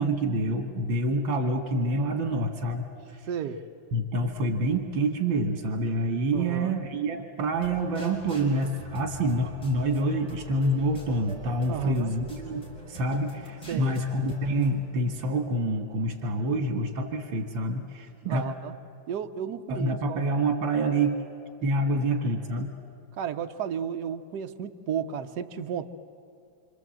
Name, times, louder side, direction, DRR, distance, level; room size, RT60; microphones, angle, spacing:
voice 1, 0.0-3.2 3.9-18.4 19.7-21.1 21.6-22.7, right 1 dB, 85° right, 4 dB, 2.2 m, -27 dB
voice 2, 3.3-3.6 6.3-6.8 11.7-12.1 13.7-13.9 18.2-18.7 19.1-20.3 23.2-25.9, right 8 dB, 60° right, 6 dB, 1.4 m, -33 dB
sound 1, 7.5-14.7, right 2 dB, 5° left, 5.2 m, -44 dB
26.5 x 26.5 x 7.7 m, 2.4 s
omnidirectional pair, 2.1 m